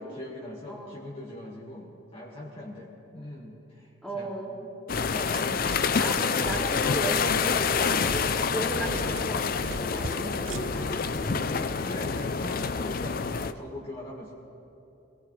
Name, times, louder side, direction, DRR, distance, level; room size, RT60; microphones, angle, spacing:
voice 1, 0.0-4.3 5.1-5.7 6.0-6.4 11.8-14.3, left 1 dB, 30° left, -5 dB, 1.6 m, -41 dB
voice 2, 0.7-1.1 4.0-4.6 6.0-11.6, right 1 dB, ahead, -4 dB, 2.7 m, -35 dB
sound 1, 4.9-13.5, left 5 dB, 45° left, 0.4 m, -27 dB
sound 2, 5.0-10.9, right 4 dB, 75° right, 0.5 m, -41 dB
24.5 x 17.5 x 3.3 m, 3.0 s
head